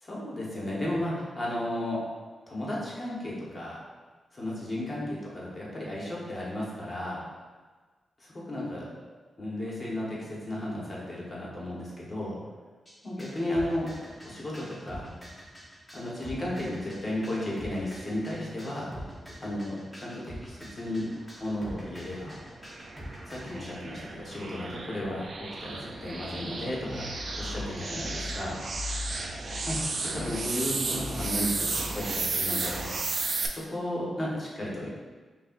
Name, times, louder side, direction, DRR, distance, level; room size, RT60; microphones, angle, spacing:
voice 1, 0.0-2.0 2.5-3.8 4.3-7.2 8.3-8.9 9.4-12.4 13.0-13.9 14.2-15.0 15.9-18.9 19.4-21.1 21.4-22.4 23.3-27.1 27.4-28.6 29.6-29.8 30.0-32.9 33.5-34.9, left 1 dB, 35° left, -5 dB, 1.3 m, -34 dB
sound 1, 12.9-23.6, equal, 5° left, 1.2 m, -45 dB
sound 2, 21.9-33.5, right 3 dB, 55° right, 0.4 m, -34 dB
sound 3, 26.9-32.8, left 3 dB, 60° left, 1.0 m, -41 dB
5.4 x 2.6 x 2.6 m, 1.4 s
cardioid pair, 75°, 0 cm